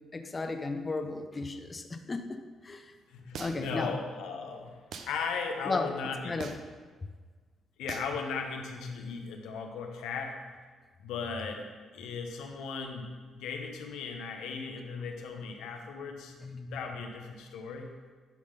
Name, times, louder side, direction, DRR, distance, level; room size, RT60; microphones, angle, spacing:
voice 1, 0.1-2.4 2.6-2.8 3.4-4.0 5.7-5.9 6.2-6.5 16.5-16.7, left 3 dB, 30° left, 7 dB, 0.6 m, -34 dB
voice 2, 3.1-4.8 5.1-6.4 7.8-10.3 11.0-11.7 11.9-13.1 13.4-16.3 16.7-17.9, left 5 dB, 90° left, 3 dB, 0.9 m, -37 dB
sound 1, 3.3-3.8 4.9-5.1 6.4-6.8 7.9-8.2, right 5 dB, 65° right, 0.7 m, -41 dB
10.5 x 3.6 x 5.3 m, 1.5 s
cardioid pair, 90°, 0 cm